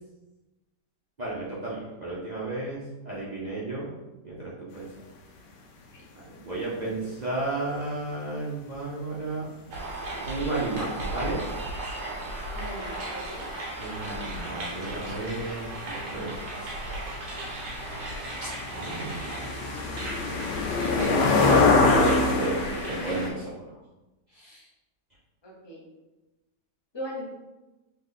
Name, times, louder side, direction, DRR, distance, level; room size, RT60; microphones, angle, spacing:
voice 1, 1.2-3.9 4.2-4.9 6.2-9.5 10.3-11.4 13.8-16.7 18.4-19.2 21.2-23.8 24.3-24.7, right 2 dB, 40° right, -8 dB, 0.6 m, -33 dB
sound 1, 9.7-23.3, right 1 dB, 90° right, 1.7 m, -36 dB
voice 2, 12.5-13.5 25.4-25.8 26.9-27.3, equal, 20° left, -4 dB, 0.7 m, -38 dB
sound 2, 15.3-15.4 15.6-23.3, left 3 dB, 85° left, 1.3 m, -25 dB
3.8 x 3.1 x 3.8 m, 1.1 s
omnidirectional pair, 1.8 m